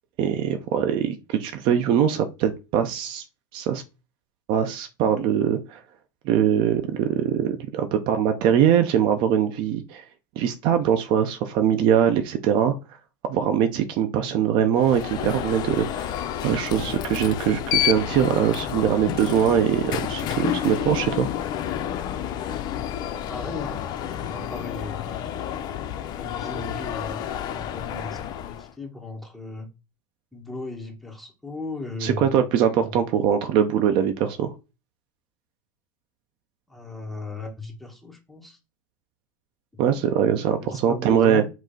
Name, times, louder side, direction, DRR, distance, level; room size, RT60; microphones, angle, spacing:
voice 1, 0.2-3.2 3.5-3.8 4.5-5.8 6.3-10.0 10.4-12.7 13.3-16.1 16.4-21.3 32.0-34.5 39.8-41.4, right 9 dB, 50° right, 0.6 m, -22 dB
Alarm, 14.8-28.7, left 10 dB, 40° left, 0.4 m, -30 dB
voice 2, 23.1-23.8 24.2-25.1 26.1-29.7 30.3-32.3 32.6-33.0 36.7-38.6 40.6-41.4, left 2 dB, ahead, 1.4 m, -36 dB
4.9 x 2.0 x 3.9 m
hypercardioid pair, 95°, 11 cm